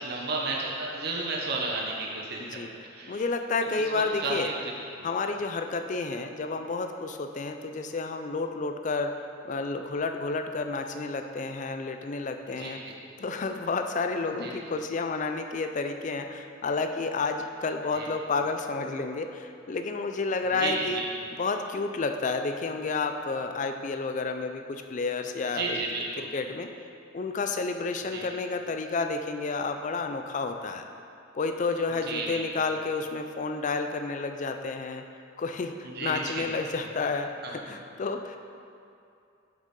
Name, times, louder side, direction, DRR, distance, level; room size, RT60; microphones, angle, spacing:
voice 1, 0.0-2.4 2.9-3.2 4.2-4.7 12.6-12.7 14.4-14.5 17.9-18.1 20.6-21.1 25.5-26.2 28.1-28.2 32.1-32.5 36.0-36.4 37.4-37.5, right 3 dB, 50° right, -3 dB, 0.8 m, -32 dB
voice 2, 2.4-2.7 3.1-4.5 5.0-9.1 9.4-12.8 13.2-21.0 21.3-25.8 26.2-26.7 27.1-30.8 31.3-35.0 35.4-38.4, left 3 dB, 35° left, 6 dB, 0.4 m, -30 dB
7.1 x 6.4 x 3.7 m, 2.5 s
head